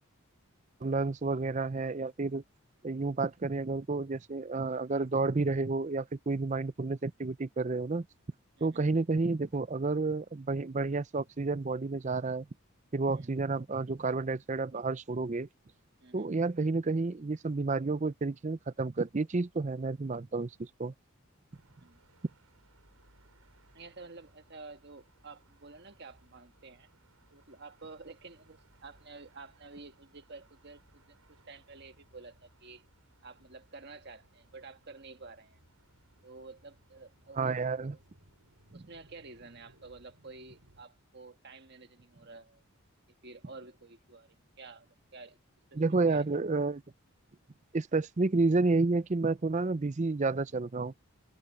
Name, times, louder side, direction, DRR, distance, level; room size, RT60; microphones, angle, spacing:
voice 1, 0.8-2.4 2.8-8.1 8.6-12.5 12.9-15.5 16.1-20.9 37.4-37.9 38.7-38.8 45.7-46.8 47.7-50.9, right 3 dB, 30° right, 0.5 m, -30 dB
sound 1, 21.5-40.8, right 1 dB, 80° right, 7.7 m, -64 dB
voice 2, 23.7-26.9 27.3-31.2 31.5-32.8 33.2-35.6 36.2-38.0 38.7-42.6 43.2-45.4 45.7-45.8 46.1-46.3, right 3 dB, 50° right, 1.5 m, -50 dB
head